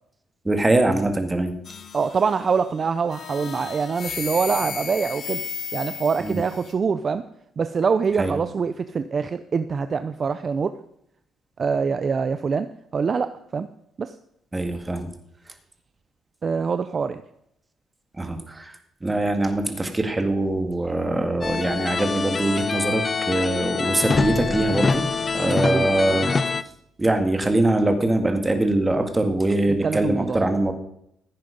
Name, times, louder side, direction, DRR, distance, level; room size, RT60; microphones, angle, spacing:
voice 1, 0.5-1.5 6.2-6.4 8.2-8.4 14.5-15.1 18.2-18.7 19.0-25.0 25.3-26.3 27.0-30.7, right 2 dB, 15° right, 6 dB, 2.1 m, -23 dB
sound 1, 1.6-2.6 3.1-6.7, left 6 dB, 50° left, 1.4 m, -34 dB
voice 2, 1.9-5.4 5.7-7.2 7.6-10.7 11.6-12.7 12.9-13.7 14.0-14.1 16.4-17.2 25.6-25.9 29.8-30.4, right 5 dB, 45° right, 11 dB, 0.6 m, -24 dB
sound 2, 21.4-26.6, left 4 dB, 35° left, 0.6 m, -25 dB
15.5 x 9.3 x 5.3 m, 0.76 s
cardioid pair, 90°, 0 cm